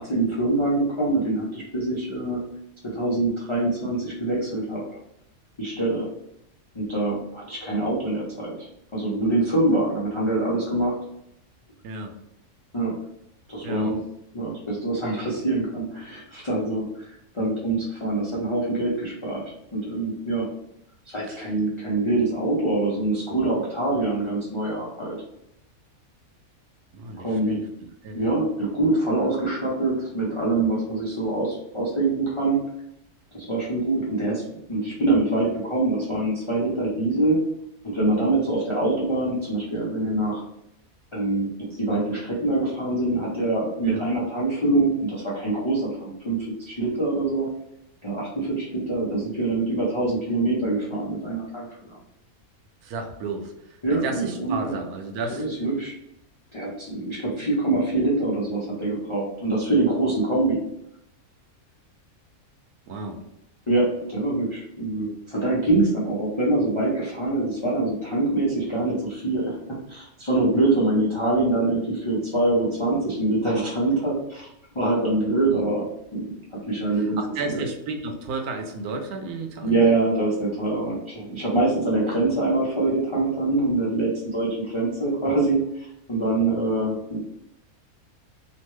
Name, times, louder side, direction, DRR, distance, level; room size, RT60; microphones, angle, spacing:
voice 1, 0.0-2.4 2.8-4.8 5.6-6.1 6.7-8.7 8.9-11.0 12.7-12.9 13.5-14.0 14.3-19.4 19.7-20.5 21.1-25.2 27.2-27.6 28.1-32.6 33.3-34.4 34.7-37.4 37.8-40.4 41.1-47.5 48.0-51.9 53.8-54.8 55.3-55.9 56.5-60.6 63.7-69.6 69.9-74.5 74.7-75.8 76.1-76.2 76.7-77.2 77.5-77.6 79.6-87.2, right 2 dB, 40° left, -6 dB, 0.4 m, -24 dB
voice 2, 13.6-13.9 21.2-21.5 26.9-27.6 28.0-28.2 43.8-44.0 52.8-53.5 53.9-55.5 62.9-63.2 75.5-75.6 76.9-79.8, right 3 dB, 85° right, 4 dB, 1.1 m, -32 dB
3.0 x 2.1 x 3.1 m, 0.79 s
omnidirectional pair, 1.5 m